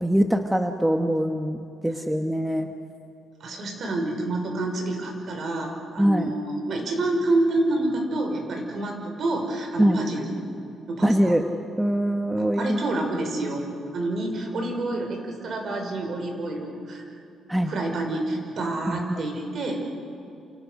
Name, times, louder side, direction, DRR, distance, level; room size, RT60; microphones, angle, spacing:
voice 1, 0.0-2.7 6.0-6.3 9.8-10.0 11.0-11.4 11.8-12.8 17.5-17.7 18.9-19.0, equal, 5° right, 5 dB, 1.1 m, -23 dB
voice 2, 3.4-10.3 10.9-11.4 12.4-13.6 13.9-17.0 17.6-19.8, right 2 dB, 50° right, 3 dB, 5.5 m, -28 dB
29.0 x 28.5 x 6.5 m, 2.5 s
cardioid pair, 135°, 0 cm